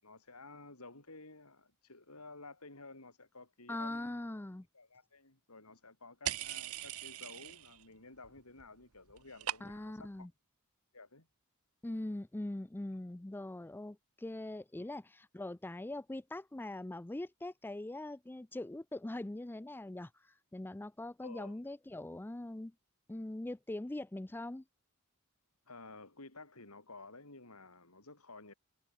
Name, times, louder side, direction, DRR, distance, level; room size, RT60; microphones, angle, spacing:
voice 1, 0.0-4.2 4.7-10.3 10.9-11.3 21.2-21.6 25.7-28.5, left 3 dB, 85° left, 7.3 m, -53 dB
voice 2, 3.7-4.7 9.6-10.3 11.8-22.7 23.1-24.6, left 1 dB, 10° left, 0.4 m, -42 dB
sound 1, 6.2-7.8 8.1-8.7 8.9-10.0, right 11 dB, 85° right, 1.1 m, -41 dB
head